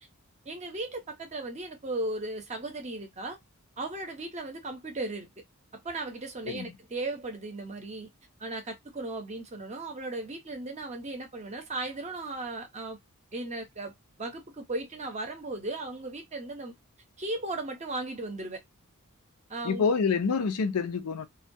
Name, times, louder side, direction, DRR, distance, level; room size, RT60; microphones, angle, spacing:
voice 1, 0.5-3.4 3.8-5.3 5.8-8.1 8.4-13.0 13.3-13.9 14.2-16.7 17.2-18.6 19.5-19.9, right 2 dB, 30° right, 0.6 m, -36 dB
voice 2, 19.6-21.3, left 5 dB, 90° left, 0.5 m, -27 dB
2.2 x 2.2 x 2.6 m
head